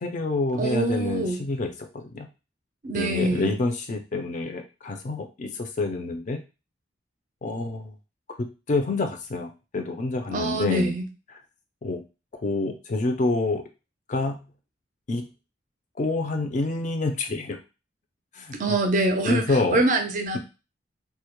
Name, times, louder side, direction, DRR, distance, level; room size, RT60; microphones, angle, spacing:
voice 1, 0.0-1.7 1.9-2.3 2.9-6.4 7.4-7.9 8.7-10.9 11.8-12.0 12.4-13.6 14.1-14.4 15.1-15.2 16.0-17.6 18.3-18.6 19.2-19.8, left 2 dB, 40° left, 6 dB, 0.4 m, -27 dB
voice 2, 0.6-1.4 2.8-3.5 10.3-11.1 18.5-20.4, right 2 dB, 45° right, 5 dB, 0.4 m, -25 dB
2.1 x 2.0 x 2.9 m, 0.30 s
head